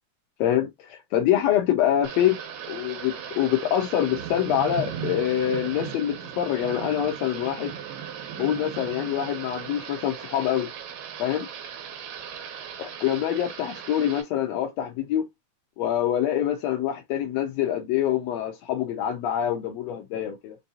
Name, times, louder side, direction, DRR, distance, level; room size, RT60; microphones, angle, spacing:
voice 1, 0.4-2.4 2.7-7.7 8.4-10.7 11.2-11.5 12.8-15.2 15.8-20.6, left 11 dB, 80° left, 1.6 m, -25 dB
Thunder / Rain, 2.0-14.2, right 8 dB, 85° right, 2.7 m, -37 dB
5.4 x 2.6 x 2.7 m
omnidirectional pair, 3.7 m